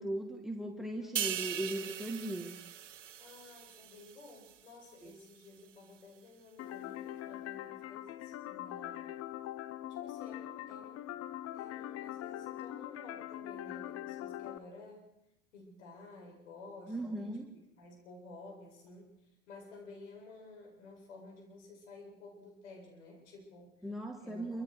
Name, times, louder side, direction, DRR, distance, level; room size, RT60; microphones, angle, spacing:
voice 1, 0.0-2.5 5.0-5.1 16.9-17.5 23.8-24.6, right 1 dB, ahead, 4 dB, 2.1 m, -38 dB
voice 2, 1.0-1.4 3.2-9.1 9.9-11.2 11.5-15.1 15.5-19.1 19.5-23.9 24.2-24.6, left 3 dB, 75° left, -1 dB, 7.9 m, -53 dB
sound 1, 1.2-4.7 5.1-5.3, right 10 dB, 80° right, 1.3 m, -40 dB
sound 2, 6.6-14.6, left 13 dB, 40° left, 1.0 m, -42 dB
27.0 x 26.0 x 4.9 m, 0.88 s
figure-of-eight pair, 75°, 36 cm